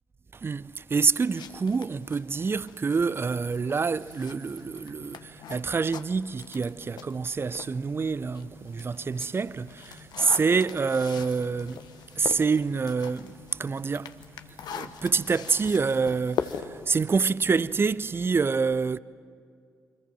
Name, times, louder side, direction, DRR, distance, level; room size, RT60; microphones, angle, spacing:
voice 1, 0.3-11.8 12.2-14.1 14.7-19.0, right 5 dB, 25° right, 0.6 m, -27 dB
sound 1, 1.0-7.8 8.2-17.9, left 8 dB, 55° left, 1.1 m, -41 dB
sound 2, 4.6-18.1, left 4 dB, 90° right, 1.6 m, -54 dB
28.0 x 25.0 x 7.4 m
figure-of-eight pair, 40°, 9 cm